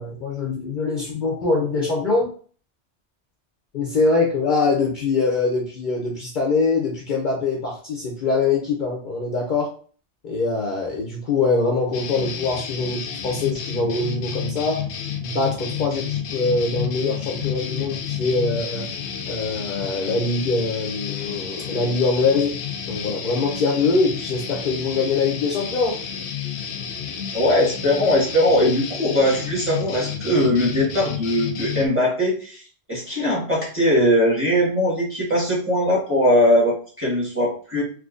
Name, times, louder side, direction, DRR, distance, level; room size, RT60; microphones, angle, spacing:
voice 1, 0.0-2.3 3.7-9.7 10.2-14.8 15.2-18.9 19.3-22.6 22.9-26.0, left 3 dB, 50° left, -2 dB, 0.7 m, -23 dB
sound 1, 11.9-31.9, left 8 dB, 80° left, 0.9 m, -31 dB
voice 2, 27.3-32.6 32.9-37.8, left 1 dB, 10° right, -6 dB, 1.5 m, -20 dB
3.7 x 2.7 x 2.5 m, 0.42 s
omnidirectional pair, 1.1 m